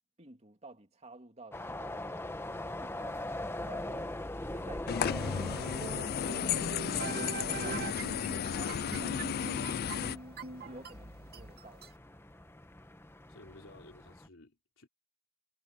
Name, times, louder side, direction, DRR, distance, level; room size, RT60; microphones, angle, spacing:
voice 1, 0.2-2.4 2.8-3.2 3.7-4.2 4.5-7.0 7.4-7.9 8.2-10.2 10.6-11.9, right 2 dB, 35° right, 2.4 m, -53 dB
sound 1, 1.5-14.3, left 1 dB, 10° left, 1.0 m, -42 dB
sound 2, 4.9-10.2, left 8 dB, 50° left, 0.4 m, -34 dB
sound 3, 5.1-11.9, right 3 dB, 50° right, 2.0 m, -42 dB
voice 2, 13.3-14.9, left 2 dB, 80° left, 3.3 m, -55 dB
head